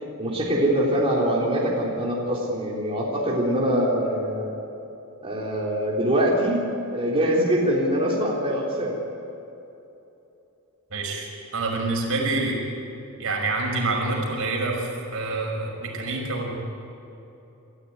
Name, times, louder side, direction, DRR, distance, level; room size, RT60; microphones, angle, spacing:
voice 1, 0.2-4.5 5.2-6.6 6.9-9.0, equal, 25° right, -4 dB, 3.6 m, -23 dB
voice 2, 10.9-12.6 13.2-16.6, right 2 dB, 70° right, 0 dB, 5.8 m, -27 dB
29.0 x 14.0 x 9.5 m, 2.9 s
head